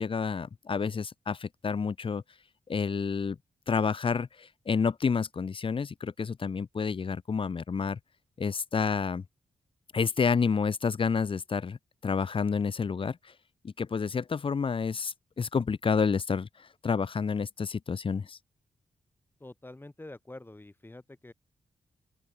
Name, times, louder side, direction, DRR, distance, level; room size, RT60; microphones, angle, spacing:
voice 1, 0.0-2.2 2.7-3.4 3.7-8.0 8.4-9.2 9.9-11.8 12.0-13.3 13.6-18.4, left 5 dB, 50° left, 1.8 m, -29 dB
voice 2, 19.4-21.3, left 2 dB, 20° left, 7.1 m, -46 dB
open air
cardioid pair, 65°, 11 cm